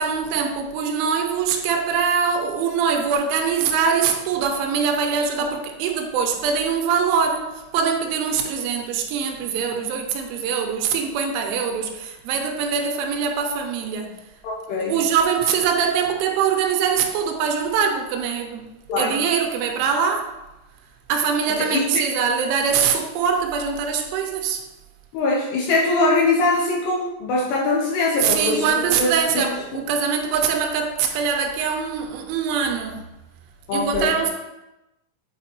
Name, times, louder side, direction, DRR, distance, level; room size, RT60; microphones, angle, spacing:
voice 1, 0.0-14.3 14.8-18.6 19.0-20.4 21.1-24.6 28.2-33.1 33.7-34.3, right 6 dB, 85° right, 3.2 m, -23 dB
voice 2, 14.4-14.9 18.9-19.2 21.6-21.9 25.1-28.7 29.0-29.1 29.7-29.8 33.7-34.1, left 2 dB, 80° left, 2.5 m, -22 dB
8.4 x 4.5 x 2.9 m
omnidirectional pair, 5.6 m